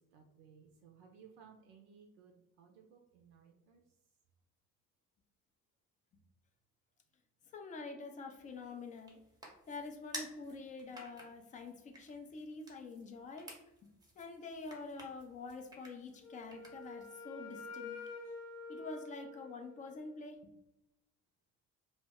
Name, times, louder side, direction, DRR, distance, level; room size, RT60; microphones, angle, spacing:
voice 1, 0.0-3.8, right 6 dB, 60° right, 2 dB, 0.5 m, -60 dB
voice 2, 7.5-9.2 9.7-13.5 13.8-13.9 14.2-18.0 18.7-20.4, left 3 dB, 20° left, 4 dB, 0.3 m, -46 dB
sound 1, 8.4-17.1, right 1 dB, 10° right, 0.7 m, -53 dB
Wind instrument woodwind instrument, 16.2-20.1, left 3 dB, 40° left, 0.7 m, -48 dB
2.0 x 2.0 x 3.5 m, 0.90 s
figure-of-eight pair, 50°, 43 cm